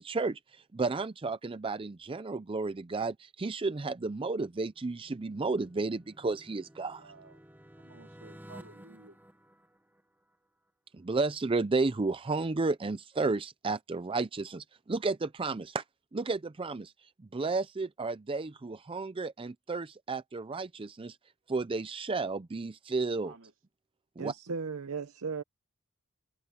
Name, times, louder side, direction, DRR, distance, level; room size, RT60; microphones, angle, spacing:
voice 1, 0.0-7.0 10.9-15.8 16.1-16.9 17.3-21.2 21.5-23.3 24.2-24.3, right 3 dB, 25° right, 0.5 m, -32 dB
sound 1, 4.5-10.3, equal, 10° right, 1.1 m, -54 dB
voice 2, 6.9-7.4 7.8-9.2 23.2-23.5, right 3 dB, 60° right, 2.8 m, -54 dB
voice 3, 24.2-25.4, right 5 dB, 80° right, 0.8 m, -36 dB
head